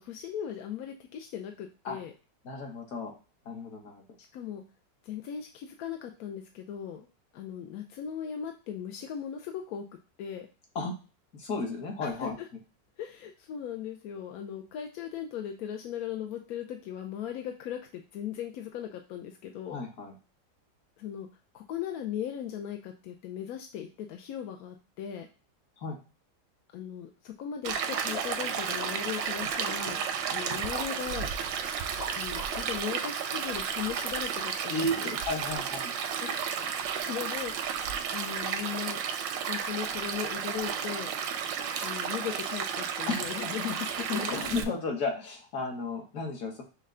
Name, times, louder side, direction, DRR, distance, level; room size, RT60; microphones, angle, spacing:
voice 1, 0.0-2.1 4.3-4.6 5.1-7.0 7.3-9.8 10.2-10.5 12.2-12.5 13.0-19.8 21.0-21.3 21.5-25.3 26.7-30.0 30.3-31.3 32.2-35.1 36.2-36.5 36.9-39.0 39.5-41.1 41.8-44.4, left 9 dB, 70° left, 3 dB, 0.9 m, -38 dB
voice 2, 2.4-3.1 3.4-4.0 10.7-10.9 11.3-12.4 19.7-20.1 25.8-26.0 34.7-35.9 43.1-43.4 44.1-46.6, left 2 dB, 50° left, 1 dB, 1.5 m, -33 dB
Stream, 27.6-44.6, right 7 dB, 85° right, 1.3 m, -33 dB
sound 1, 28.0-33.1, equal, 30° left, 0.9 m, -43 dB
6.4 x 2.3 x 3.7 m, 0.33 s
omnidirectional pair, 2.0 m